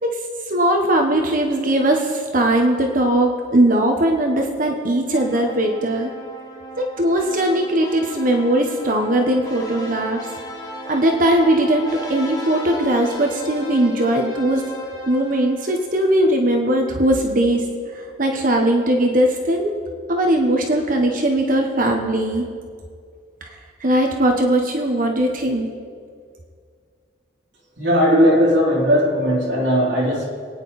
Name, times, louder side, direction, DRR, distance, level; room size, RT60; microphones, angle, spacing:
voice 1, 0.5-6.1 6.8-10.3 10.8-14.6 15.1-17.6 17.9-19.7 20.1-22.4 23.4-23.5 23.8-25.7, right 1 dB, 45° right, 2 dB, 1.2 m, -19 dB
sound 1, 5.1-16.4, left 1 dB, 20° left, 1.9 m, -36 dB
voice 2, 27.8-30.3, equal, 65° right, -5 dB, 4.1 m, -17 dB
25.5 x 9.7 x 4.2 m, 2.1 s
head